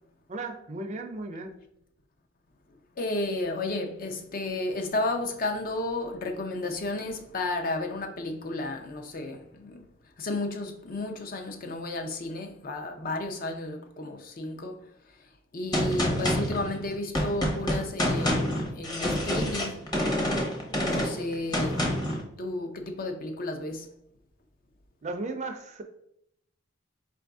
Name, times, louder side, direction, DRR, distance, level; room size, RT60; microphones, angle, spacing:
voice 1, 0.3-1.6 25.0-25.8, right 2 dB, 35° right, 0.5 m, -35 dB
voice 2, 3.0-9.8 10.2-14.8 15.5-19.9 20.8-21.8 22.4-23.9, left 2 dB, 45° left, 0.5 m, -32 dB
Gunshot gunfire, 15.7-22.2, equal, 20° left, 0.8 m, -27 dB
4.6 x 2.6 x 3.4 m
head